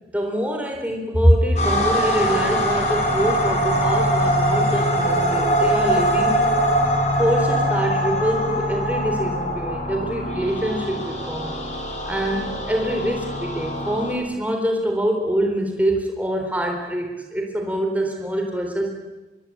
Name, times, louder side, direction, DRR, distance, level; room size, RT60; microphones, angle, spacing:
voice 1, 0.1-6.4 7.2-11.6 12.1-18.9, equal, 10° right, 2 dB, 3.8 m, -24 dB
sound 1, 1.6-14.1, equal, 40° left, 6.1 m, -22 dB
24.5 x 22.5 x 8.7 m, 1.1 s
head